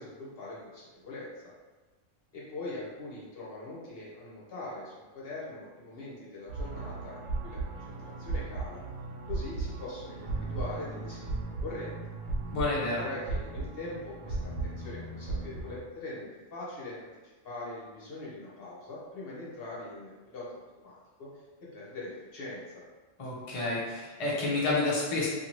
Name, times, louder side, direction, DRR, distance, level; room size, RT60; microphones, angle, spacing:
voice 1, 0.0-1.5 2.3-8.8 9.3-12.0 13.0-21.3 21.6-22.8, left 2 dB, 55° left, -6 dB, 0.9 m, -42 dB
sound 1, 6.5-15.8, right 3 dB, 90° right, 1.0 m, -36 dB
voice 2, 12.5-13.0 23.2-25.3, left 2 dB, 40° left, -5 dB, 0.5 m, -29 dB
2.6 x 2.5 x 3.0 m, 1.2 s
omnidirectional pair, 1.3 m